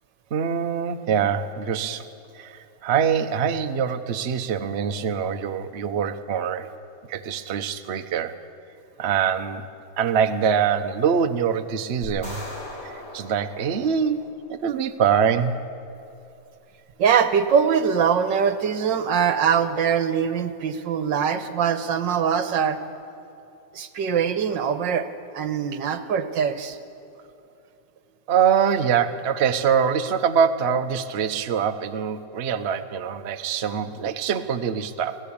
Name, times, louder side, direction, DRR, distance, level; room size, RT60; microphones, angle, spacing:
voice 1, 0.3-2.0 2.3-6.7 7.1-8.3 9.0-9.6 10.0-12.4 12.8-15.6 28.3-35.2, right 7 dB, 50° right, 7 dB, 0.9 m, -24 dB
sound 1, 12.0-14.4, left 1 dB, 40° left, 6.6 m, -39 dB
voice 2, 17.0-22.8 23.7-25.1 25.3-26.8, right 7 dB, 75° right, 10 dB, 1.8 m, -22 dB
25.0 x 15.5 x 8.6 m, 2.7 s
omnidirectional pair, 2.0 m